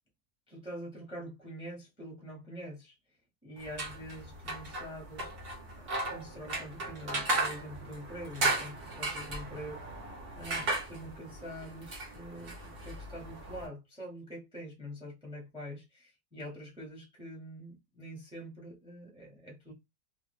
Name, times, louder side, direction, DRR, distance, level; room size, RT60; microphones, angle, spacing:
voice 1, 0.5-3.0 3.4-5.3 5.7-9.8 10.4-19.7, equal, 5° right, 0.8 m, -45 dB
sound 1, 3.6-13.7, right 2 dB, 45° right, 0.9 m, -36 dB
2.5 x 2.4 x 3.3 m
omnidirectional pair, 1.7 m